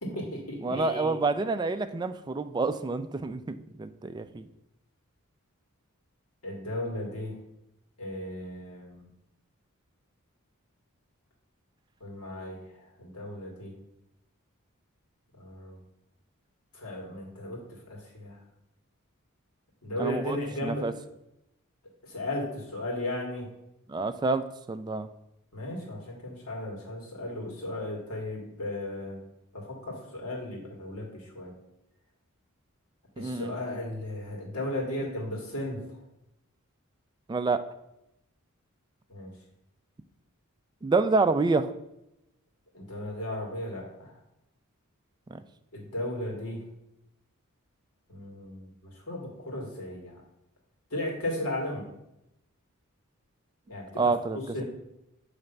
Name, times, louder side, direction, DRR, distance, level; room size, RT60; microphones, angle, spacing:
voice 1, 0.0-1.2 6.4-7.4 8.0-9.1 12.0-13.7 15.4-15.8 16.7-18.4 19.8-20.9 22.0-23.5 25.5-29.2 29.5-31.5 33.2-36.0 39.1-39.3 42.7-44.1 45.7-46.6 48.1-50.2 50.9-51.9 53.7-54.6, left 1 dB, 80° left, -2 dB, 2.0 m, -35 dB
voice 2, 0.6-4.4 20.0-20.9 23.9-25.1 33.2-33.5 37.3-37.6 40.8-41.7 45.3-45.4 54.0-54.6, right 3 dB, 20° right, 10 dB, 0.3 m, -28 dB
7.0 x 3.3 x 5.2 m, 0.86 s
head